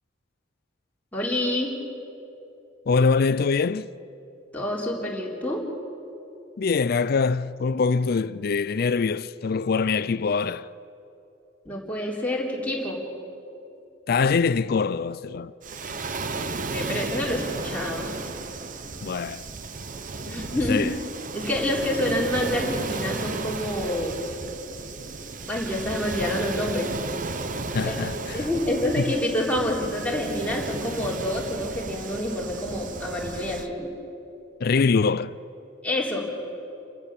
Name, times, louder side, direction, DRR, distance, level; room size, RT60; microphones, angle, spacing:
voice 1, 1.1-1.7 4.5-5.6 11.7-13.0 16.6-18.1 20.3-20.8 21.3-24.2 25.5-26.9 27.8-28.0 28.3-33.9 35.8-36.2, left 1 dB, 10° left, 3.7 m, -27 dB
voice 2, 2.9-3.9 6.6-10.7 14.1-15.5 19.0-19.4 20.7-20.9 27.7-28.4 29.0-29.1 34.6-35.4, left 4 dB, 55° left, 0.4 m, -23 dB
Waves surf, 15.6-33.7, right 3 dB, 45° right, 0.9 m, -34 dB
29.0 x 15.0 x 7.4 m
head